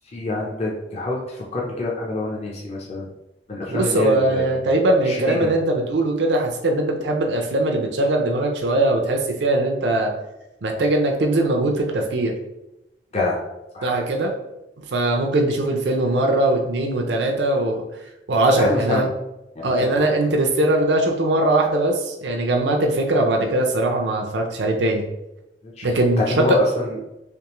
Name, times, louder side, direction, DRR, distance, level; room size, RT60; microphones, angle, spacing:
voice 1, 0.1-3.1 3.5-4.8 5.0-5.5 13.1-13.4 13.7-13.9 18.6-19.1 19.6-20.1 25.6-27.0, left 2 dB, 35° left, -3 dB, 0.5 m, -26 dB
voice 2, 3.7-10.1 10.6-12.3 13.8-14.3 14.9-17.8 18.3-19.1 19.6-25.0 25.8-26.4, right 2 dB, 70° right, 2 dB, 0.6 m, -20 dB
3.5 x 3.1 x 3.0 m, 0.92 s
head